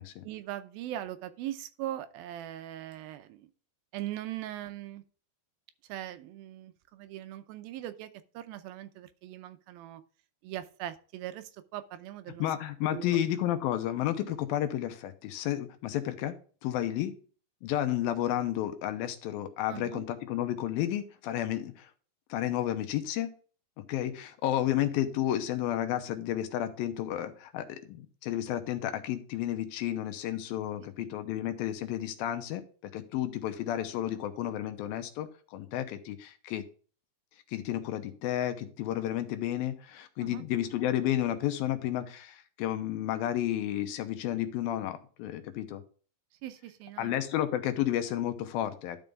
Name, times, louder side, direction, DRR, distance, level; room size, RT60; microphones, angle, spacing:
voice 1, 0.2-3.5 3.9-5.0 5.9-10.0 10.4-12.5 12.9-13.2 19.7-20.1 31.0-31.1 40.2-40.4 46.4-47.2, right 13 dB, 85° right, 11 dB, 2.5 m, -40 dB
voice 2, 12.4-17.2 17.6-21.9 22.3-23.3 23.9-32.7 32.9-36.6 37.5-45.8 47.0-49.0, left 12 dB, 80° left, 9 dB, 2.5 m, -32 dB
11.5 x 5.4 x 3.5 m, 0.40 s
omnidirectional pair, 4.3 m